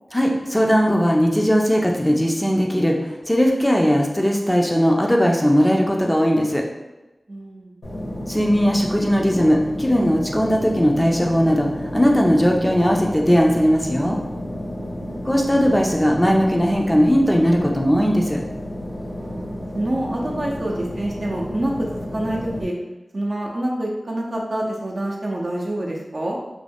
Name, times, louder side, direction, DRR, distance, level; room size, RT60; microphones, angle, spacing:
voice 1, 0.1-6.6 8.3-14.2 15.2-18.4, equal, 15° left, 0 dB, 0.4 m, -18 dB
voice 2, 7.3-7.8 14.7-15.2 19.1-22.8 23.1-26.4, right 1 dB, 55° right, -2 dB, 0.5 m, -27 dB
sound 1, 7.8-22.6, left 1 dB, 75° left, 0.9 m, -32 dB
2.5 x 2.1 x 3.3 m, 1.0 s
wide cardioid pair, 50°, 0 cm